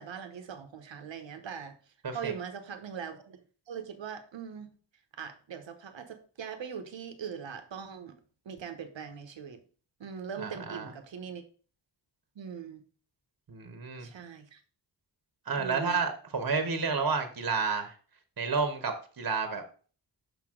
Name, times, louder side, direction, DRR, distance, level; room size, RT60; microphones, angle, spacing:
voice 1, 0.0-1.8 2.1-4.7 5.1-8.2 8.4-9.6 10.0-11.4 12.3-12.8 14.0-14.6 15.6-16.1, right 7 dB, 75° right, 7 dB, 1.1 m, -41 dB
voice 2, 10.4-10.9 13.5-14.1 15.5-17.9 18.4-19.6, right 4 dB, 50° right, 7 dB, 1.3 m, -30 dB
6.1 x 5.5 x 3.7 m, 0.39 s
cardioid pair, 60°, 45 cm